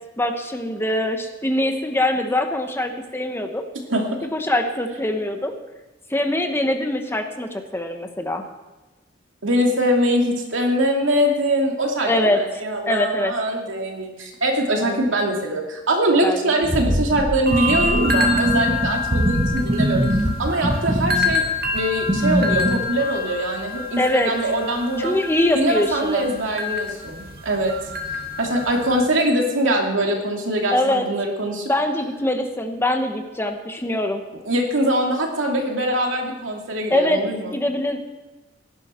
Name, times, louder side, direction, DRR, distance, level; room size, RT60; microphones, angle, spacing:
voice 1, 0.2-3.6 4.3-5.5 6.1-8.4 12.1-12.4 12.9-13.3 14.8-15.0 16.2-16.4 24.0-24.3 25.0-26.3 30.7-31.1 31.7-34.2 36.9-37.2 37.5-38.0, left 1 dB, 15° left, 5 dB, 1.1 m, -23 dB
voice 2, 9.4-20.0 20.4-21.4 21.7-25.2 25.5-27.7 28.1-31.7 34.5-37.5, right 1 dB, 80° right, 1 dB, 2.6 m, -22 dB
sound 1, 16.6-22.8, right 1 dB, 30° right, 1.1 m, -23 dB
sound 2, 17.5-29.0, left 3 dB, 55° right, 1.9 m, -27 dB
16.5 x 11.5 x 4.4 m, 1.1 s
head